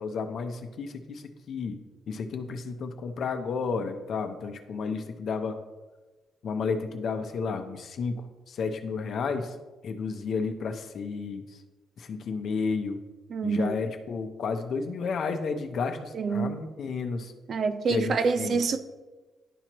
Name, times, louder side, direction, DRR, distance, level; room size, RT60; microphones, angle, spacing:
voice 1, 0.0-1.8 2.1-5.6 6.4-9.6 9.8-11.6 12.0-13.0 13.4-17.3 17.9-18.6, left 5 dB, 60° left, 0.7 m, -32 dB
voice 2, 13.3-13.8 16.1-16.6 17.5-18.8, right 4 dB, 55° right, 0.5 m, -27 dB
11.0 x 4.4 x 3.0 m
cardioid pair, 90°, 0 cm